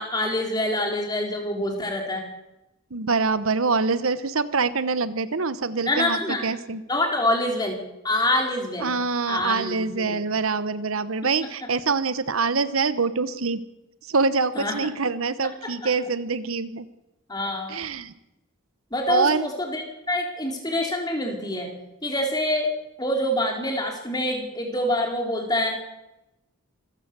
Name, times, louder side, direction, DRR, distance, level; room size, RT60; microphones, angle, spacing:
voice 1, 0.0-2.2 5.8-6.4 6.9-7.8 8.0-8.9 9.3-10.2 14.5-14.8 17.3-17.8 18.9-21.7 22.0-22.7 23.0-25.8, left 1 dB, 20° left, 1 dB, 3.9 m, -26 dB
voice 2, 2.9-6.8 8.8-13.6 14.1-16.8 17.7-18.1 19.1-19.5, right 4 dB, 70° right, 14 dB, 1.0 m, -25 dB
26.0 x 15.0 x 6.8 m, 0.94 s
head